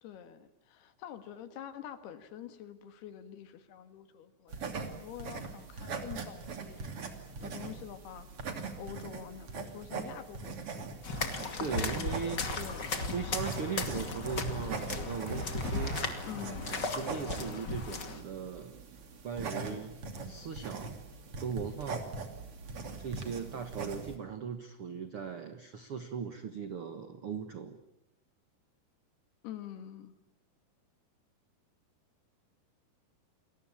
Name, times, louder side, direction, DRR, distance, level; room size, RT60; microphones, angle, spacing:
voice 1, 0.0-7.1 7.4-10.8 11.2-12.9 16.3-16.8 29.4-30.1, left 10 dB, 75° left, 10 dB, 3.7 m, -47 dB
sound 1, 4.5-24.2, right 4 dB, 40° right, 3.1 m, -42 dB
sound 2, 11.0-18.2, left 3 dB, 30° left, 2.3 m, -36 dB
voice 2, 11.6-12.4 13.1-16.0 16.7-18.8 19.2-19.9 20.2-20.9 21.4-22.1 23.0-27.8, right 6 dB, 60° right, 9 dB, 1.4 m, -38 dB
sound 3, 14.1-17.4, right 3 dB, 85° right, 9.0 m, -49 dB
29.0 x 22.0 x 8.7 m, 0.79 s
omnidirectional pair, 4.7 m